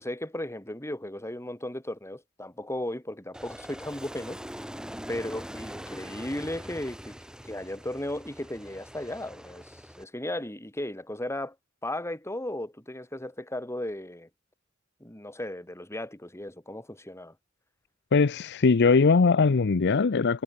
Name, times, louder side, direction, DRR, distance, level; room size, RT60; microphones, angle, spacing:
voice 1, 0.0-4.4 5.1-7.2 7.4-11.5 11.8-14.3 15.0-17.3, left 1 dB, 15° left, 5.0 m, -35 dB
Aircraft, 3.3-10.0, equal, 5° right, 4.6 m, -43 dB
voice 2, 18.1-20.4, left 4 dB, 55° left, 0.6 m, -21 dB
head